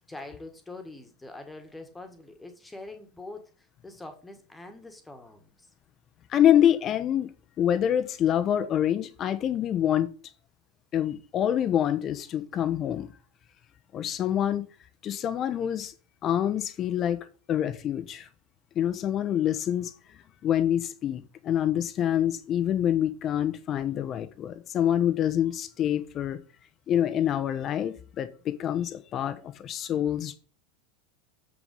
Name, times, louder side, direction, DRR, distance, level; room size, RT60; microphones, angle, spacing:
voice 1, 0.1-5.7, left 2 dB, 10° left, 1.8 m, -44 dB
voice 2, 6.3-7.3 7.6-10.1 10.9-13.1 13.9-14.7 15.0-15.9 16.2-18.3 18.7-19.9 20.4-26.4 26.9-30.4, left 10 dB, 35° left, 1.0 m, -26 dB
7.7 x 6.4 x 5.4 m
figure-of-eight pair, 80°, 0 cm